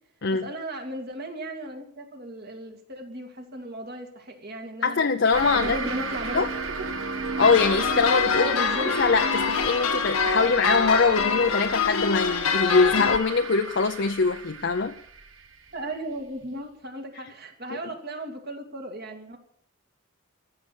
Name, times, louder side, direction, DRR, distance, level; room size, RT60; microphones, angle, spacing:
voice 1, 0.3-5.0 5.5-6.5 6.8-6.9 8.3-9.0 15.7-19.4, right 1 dB, 45° right, 2.3 m, -36 dB
voice 2, 4.8-5.8 6.3-6.5 7.4-8.5 9.0-14.9, left 4 dB, 55° left, 0.6 m, -22 dB
sound 1, 5.3-16.5, right 3 dB, 70° right, 1.3 m, -34 dB
sound 2, 7.4-13.2, left 5 dB, 80° left, 1.4 m, -25 dB
13.5 x 6.9 x 9.8 m
head